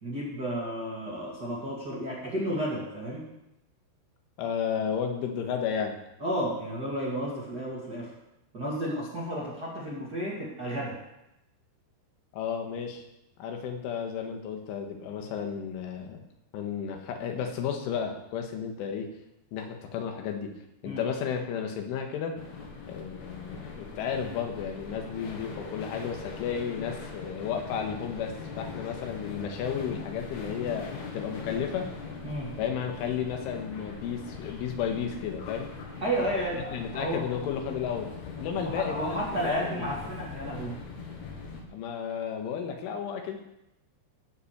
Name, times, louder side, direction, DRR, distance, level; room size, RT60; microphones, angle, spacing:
voice 1, 0.0-3.3 6.2-8.1 8.5-11.0 20.8-21.0 32.2-32.5 36.0-37.2 38.6-40.8, right 1 dB, 30° right, -5 dB, 1.8 m, -32 dB
voice 2, 4.4-6.0 12.3-13.0 13.4-16.2 16.5-19.1 19.5-20.5 20.8-22.4 22.9-31.9 32.6-35.7 36.7-38.1 38.4-40.2 41.7-43.4, left 7 dB, 90° left, 4 dB, 3.9 m, -33 dB
sound 1, 22.4-41.6, left 4 dB, 55° left, 2.1 m, -41 dB
17.0 x 5.6 x 6.8 m, 0.88 s
omnidirectional pair, 5.5 m